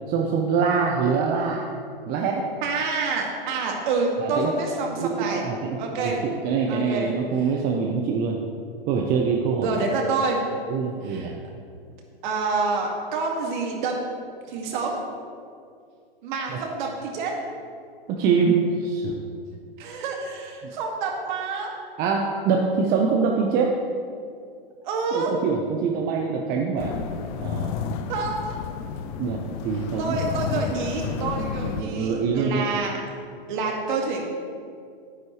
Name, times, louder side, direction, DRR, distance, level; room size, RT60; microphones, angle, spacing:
voice 1, 0.1-1.7 2.1-2.5 4.2-4.5 5.0-8.4 8.9-9.8 10.7-11.3 16.5-16.6 18.1-19.1 22.0-23.7 25.1-27.0 27.3-27.8 29.2-30.2 30.5-32.6, right 5 dB, 30° right, 1 dB, 0.8 m, -25 dB
voice 2, 0.9-1.2 2.6-5.4 5.8-6.2 6.7-7.1 9.6-10.4 11.0-11.3 12.2-14.0 14.5-15.0 16.2-17.3 19.8-21.7 24.8-25.3 28.1-28.5 30.0-33.0 33.5-34.2, right 4 dB, 50° right, 1 dB, 2.0 m, -27 dB
sound 1, 26.8-31.8, left 7 dB, 35° left, 0.6 m, -31 dB
10.5 x 9.9 x 3.2 m, 2.3 s
hypercardioid pair, 115°, 30 cm